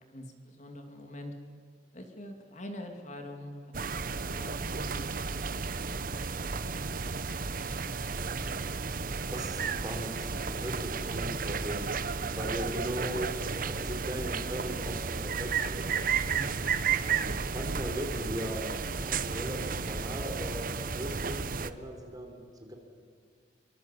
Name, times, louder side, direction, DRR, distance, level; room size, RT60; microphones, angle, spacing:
voice 1, 0.1-1.3 1.9-3.7 4.1-5.6 16.2-16.7, left 1 dB, 40° left, 4 dB, 2.7 m, -44 dB
sound 1, 3.7-21.7, right 5 dB, 50° right, 1.0 m, -33 dB
voice 2, 9.3-11.9 12.2-16.0 16.9-18.7 19.0-22.7, right 1 dB, 20° right, 3 dB, 3.8 m, -38 dB
24.0 x 24.0 x 8.4 m, 2.1 s
head